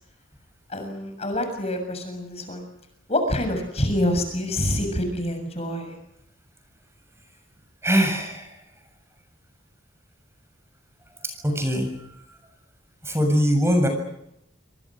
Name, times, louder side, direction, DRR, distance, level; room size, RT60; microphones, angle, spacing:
voice 1, 0.7-2.6 3.1-6.0, left 1 dB, 35° left, 6 dB, 7.0 m, -26 dB
voice 2, 7.8-8.6 11.2-12.4 13.0-13.9, equal, 15° right, 5 dB, 7.0 m, -23 dB
28.0 x 26.0 x 6.3 m, 0.78 s
head